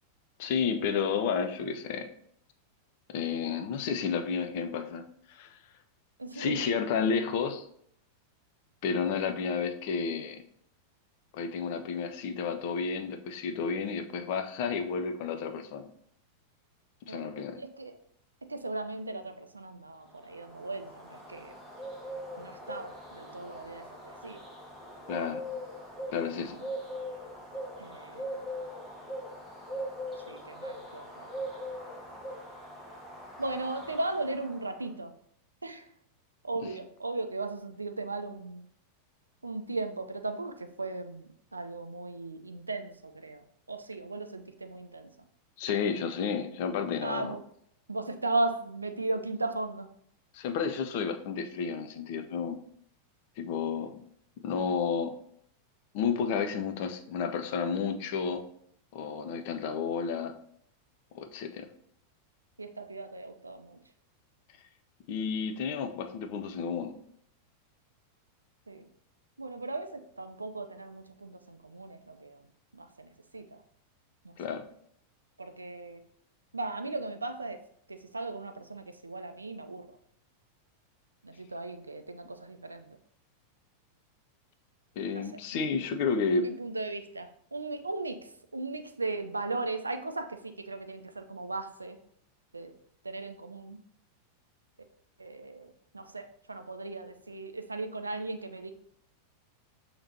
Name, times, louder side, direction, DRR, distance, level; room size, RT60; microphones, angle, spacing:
voice 1, 0.4-2.1 3.1-5.0 5.3-5.6 6.3-7.7 8.8-10.4 11.3-15.9 17.1-17.6 25.1-25.4 26.1-26.6 36.6-36.7 45.6-47.4 50.3-52.6 53.4-54.0 54.4-55.1 55.9-58.4 58.9-60.3 61.1-61.7 65.1-66.9 74.4-74.6 85.0-86.5, left 6 dB, 50° left, 7 dB, 0.5 m, -31 dB
voice 2, 6.2-6.6 17.1-17.9 18.5-21.5 22.4-24.4 26.2-26.3 27.8-28.3 30.3-31.3 33.4-35.1 35.6-35.9 36.4-38.7 39.4-41.3 41.5-45.1 47.0-47.4 47.9-49.9 53.7-53.9 62.6-63.8 68.7-68.9 69.4-72.4 72.7-73.6 74.2-74.5 75.4-76.0 76.5-77.6 77.9-79.9 81.2-83.0 85.1-85.3 85.5-85.6 86.4-92.0 92.5-92.7 93.0-93.8 95.2-98.7, right 2 dB, 80° right, 8 dB, 0.4 m, -37 dB
Bird, 20.1-34.8, equal, 5° left, 1.2 m, -41 dB
6.6 x 2.9 x 2.7 m, 0.68 s
figure-of-eight pair, 90°, 0 cm